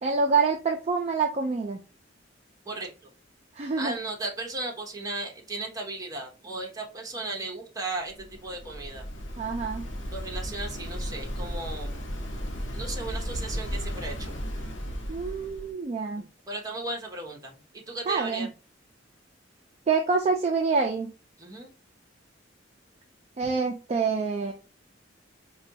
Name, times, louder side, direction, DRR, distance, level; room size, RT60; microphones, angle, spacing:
voice 1, 0.0-1.8 3.6-3.9 9.4-9.8 15.1-16.2 18.1-18.5 19.9-21.1 23.4-24.5, right 4 dB, 35° right, 2 dB, 0.4 m, -26 dB
voice 2, 3.8-9.0 10.1-11.9 12.7-14.4 16.2-18.5 21.4-21.7, right 2 dB, 20° right, 0 dB, 0.8 m, -36 dB
Waves surf, 8.1-15.7, equal, 80° left, 0.7 m, -35 dB
4.1 x 2.2 x 2.7 m, 0.31 s
head